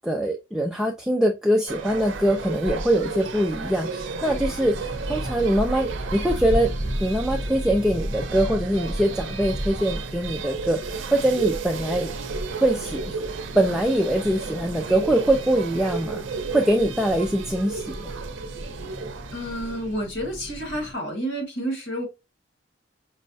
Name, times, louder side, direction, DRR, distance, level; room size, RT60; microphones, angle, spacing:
voice 1, 0.0-6.7 7.0-12.1 12.6-13.2 13.5-16.2 16.5-18.1, right 1 dB, 5° right, 0.4 m, -23 dB
sound 1, 1.7-20.0, right 4 dB, 85° right, 0.6 m, -33 dB
sound 2, 4.3-20.9, equal, 25° left, 0.7 m, -35 dB
voice 2, 19.3-22.1, right 1 dB, 75° left, 1.5 m, -30 dB
5.4 x 2.1 x 2.6 m
head